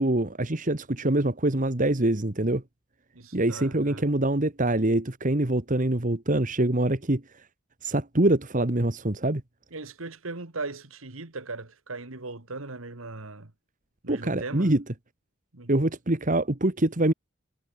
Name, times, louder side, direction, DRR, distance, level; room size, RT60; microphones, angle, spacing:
voice 1, 0.0-2.6 3.3-7.2 7.8-9.4 14.1-14.8 15.7-17.1, right 1 dB, 40° right, 1.6 m, -24 dB
voice 2, 3.1-4.1 9.7-13.5 14.0-14.7 15.5-15.7, right 3 dB, 85° right, 2.1 m, -38 dB
head